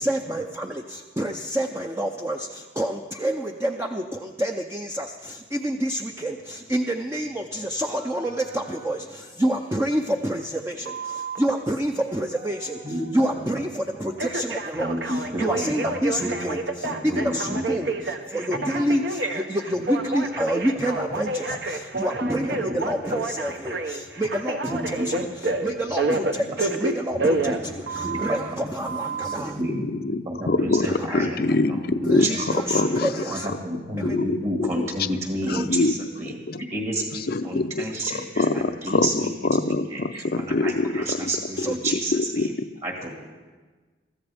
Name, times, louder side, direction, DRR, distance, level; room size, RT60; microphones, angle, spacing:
voice 1, 0.0-29.6 30.8-31.1 32.0-33.5 34.0-34.2 35.4-35.6 41.6-41.8, equal, 15° right, 3 dB, 0.5 m, -28 dB
Telephone, 10.9-11.4 14.2-28.4 28.9-29.4, right 2 dB, 60° right, 1.1 m, -29 dB
voice 2, 12.8-13.2 14.7-15.7 16.2-17.6 18.5-18.8 19.2-19.3 22.2-22.8 23.1-23.2 24.7-25.1 26.4-26.5 27.4-27.5 28.0-28.4 29.4-29.9 30.3-32.5 32.7-32.9 33.3-39.3 39.9-42.5 42.8-43.1, right 1 dB, 35° right, 0 dB, 1.9 m, -30 dB
voice 3, 29.7-33.1 33.7-34.9 35.5-36.0 36.2-36.6 37.1-37.8 38.1-41.3 41.6-41.7 42.1-42.5, left 3 dB, 55° left, 11 dB, 0.6 m, -25 dB
23.0 x 14.5 x 3.5 m, 1.3 s
head